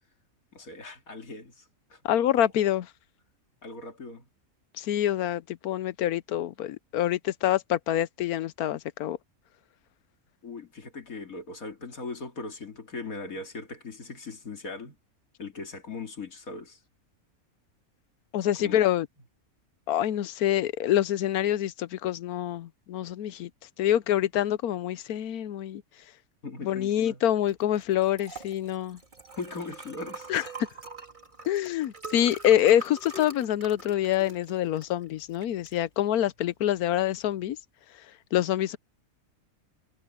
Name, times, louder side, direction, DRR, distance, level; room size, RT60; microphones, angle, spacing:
voice 1, 0.5-2.0 3.6-4.2 10.4-15.0 15.4-16.8 18.6-18.8 26.4-27.2 29.4-30.4, left 3 dB, 70° left, 3.1 m, -39 dB
voice 2, 2.0-2.9 4.8-9.2 18.3-19.1 19.9-23.5 23.8-25.8 26.6-29.0 30.3-30.4 31.5-37.6 38.3-38.8, left 11 dB, 90° left, 1.2 m, -26 dB
Liquid, 27.4-37.6, right 2 dB, 30° right, 3.0 m, -45 dB
omnidirectional pair, 1.5 m